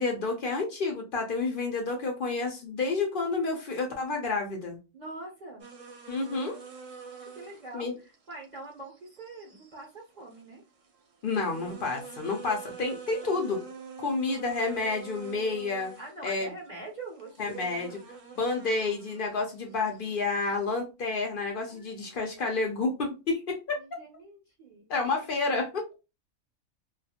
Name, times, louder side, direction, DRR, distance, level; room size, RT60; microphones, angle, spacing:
voice 1, 0.0-4.8 6.1-6.6 7.7-7.9 11.2-13.6 14.0-15.9 16.2-16.5 17.4-17.9 18.3-23.8 24.9-26.0, left 3 dB, 55° left, 3 dB, 0.6 m, -30 dB
voice 2, 4.9-5.6 7.3-10.6 13.2-13.3 16.0-17.6 21.7-22.2 23.8-24.9, right 2 dB, 40° right, -2 dB, 0.7 m, -44 dB
sound 1, 5.6-20.8, right 5 dB, 70° right, 0.9 m, -47 dB
2.4 x 2.4 x 2.7 m, 0.28 s
omnidirectional pair, 1.4 m